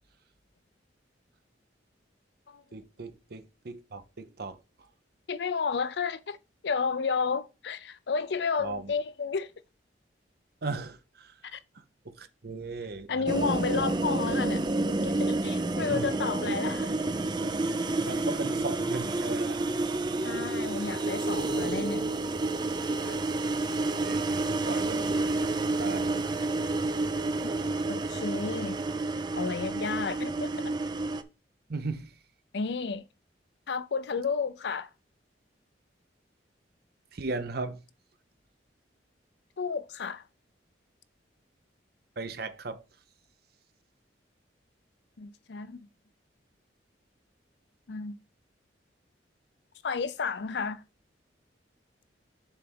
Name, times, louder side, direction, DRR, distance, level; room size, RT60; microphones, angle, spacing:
voice 1, 2.7-4.6 8.6-8.9 10.6-11.3 12.1-13.9 15.9-16.1 18.0-19.6 23.8-25.5 25.8-26.2 31.7-32.1 37.1-37.8 42.2-42.8, right 3 dB, 60° right, 0.7 m, -37 dB
voice 2, 5.3-6.4 6.6-9.5 11.4-11.6 13.1-17.0 20.2-22.1 23.0-23.2 27.4-27.5 27.9-28.8 29.3-30.5 32.5-33.1 33.7-34.9 39.6-40.2 45.2-45.8 47.9-48.2 49.8-50.8, left 5 dB, 65° left, 0.5 m, -32 dB
sound 1, 13.3-31.2, right 2 dB, 25° right, 0.5 m, -29 dB
7.1 x 3.4 x 5.3 m
head